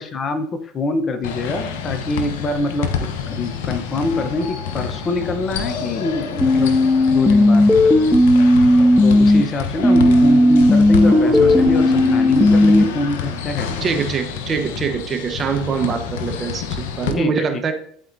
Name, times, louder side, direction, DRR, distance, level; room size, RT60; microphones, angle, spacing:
voice 1, 0.0-6.8 7.1-8.1 8.4-8.5 8.8-13.9 17.1-17.6, left 2 dB, 35° left, 8 dB, 0.8 m, -25 dB
sound 1, 1.2-17.1, left 6 dB, 75° left, 0.9 m, -28 dB
sound 2, 6.4-9.4 9.8-12.8, left 1 dB, 5° left, 0.6 m, -13 dB
sound 3, 11.0-14.3 14.6-14.7, right 9 dB, 60° right, 0.7 m, -30 dB
voice 2, 13.8-17.7, right 5 dB, 35° right, 5 dB, 1.1 m, -23 dB
11.5 x 4.2 x 2.7 m, 0.62 s
hypercardioid pair, 80°, 0 cm